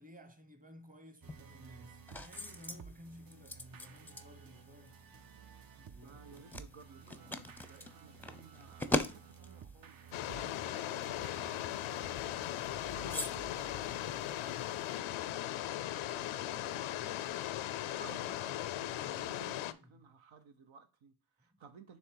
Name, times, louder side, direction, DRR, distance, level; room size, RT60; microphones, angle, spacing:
voice 1, 0.0-5.0 5.9-6.5 19.6-20.0 21.4-21.6, equal, 15° right, 1.1 m, -55 dB
sound 1, 1.2-15.0, left 1 dB, 5° left, 0.6 m, -44 dB
sound 2, 1.2-14.5, right 7 dB, 45° right, 0.6 m, -55 dB
voice 2, 5.3-22.0, right 5 dB, 70° right, 0.9 m, -58 dB
sound 3, 10.1-19.7, left 13 dB, 90° left, 0.6 m, -38 dB
6.4 x 3.3 x 4.7 m
cardioid pair, 60°, 48 cm